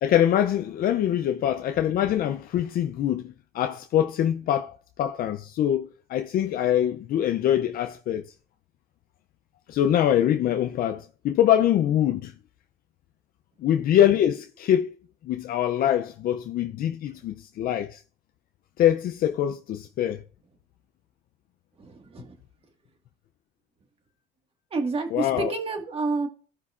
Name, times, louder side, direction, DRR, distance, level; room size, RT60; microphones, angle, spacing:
voice 1, 0.0-8.3 9.7-12.3 13.6-15.0 15.2-18.0 18.8-20.2 25.1-25.5, left 11 dB, 60° left, 0.5 m, -24 dB
voice 2, 21.8-22.4 24.7-26.3, right 3 dB, 35° right, 1.7 m, -29 dB
15.0 x 5.3 x 2.5 m
cardioid pair, 110°, 17 cm